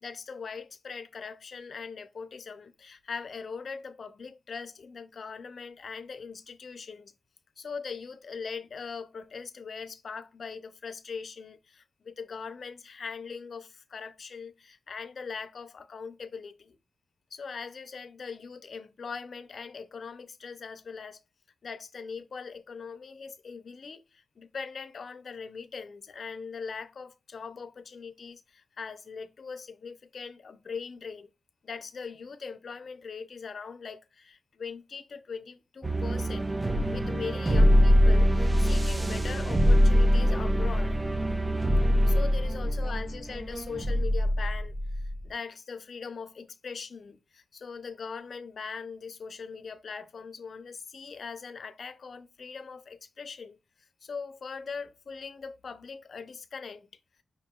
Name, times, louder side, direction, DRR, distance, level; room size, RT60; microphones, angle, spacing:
voice 1, 0.0-7.1 7.6-16.8 17.3-21.2 21.6-31.3 31.6-36.5 36.9-41.0 42.0-53.6 54.0-56.9, left 5 dB, 60° left, 0.4 m, -41 dB
sound 1, 35.8-45.3, equal, 20° right, 0.3 m, -23 dB
4.9 x 2.8 x 2.2 m
cardioid pair, 85°, 0 cm